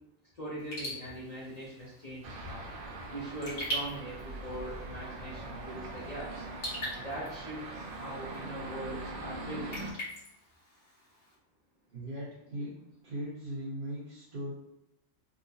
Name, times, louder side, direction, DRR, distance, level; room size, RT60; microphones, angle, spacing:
voice 1, 0.4-2.6 3.1-6.5 7.0-9.7, right 1 dB, 50° left, -7 dB, 0.5 m, -41 dB
Raindrop / Drip, 0.6-11.3, right 1 dB, 85° left, 1.6 m, -43 dB
sound 1, 2.2-9.9, right 2 dB, 70° right, 0.5 m, -42 dB
voice 2, 11.9-12.7 13.0-14.5, equal, 40° right, -11 dB, 1.0 m, -38 dB
3.7 x 2.0 x 2.7 m, 0.82 s
omnidirectional pair, 1.4 m